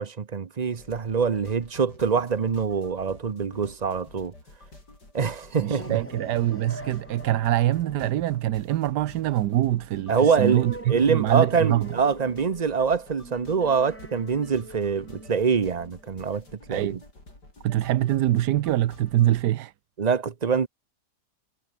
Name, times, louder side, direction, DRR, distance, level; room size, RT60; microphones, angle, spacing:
voice 1, 0.0-4.3 5.1-6.0 10.1-16.4 16.7-17.0 20.0-20.7, right 6 dB, 35° right, 0.7 m, -25 dB
sound 1, 0.7-19.4, left 2 dB, 80° left, 8.3 m, -49 dB
sound 2, 5.5-16.7, equal, 5° left, 6.5 m, -44 dB
voice 2, 5.6-11.9 16.7-17.0 17.6-19.7, right 13 dB, 85° right, 1.3 m, -24 dB
omnidirectional pair, 1.8 m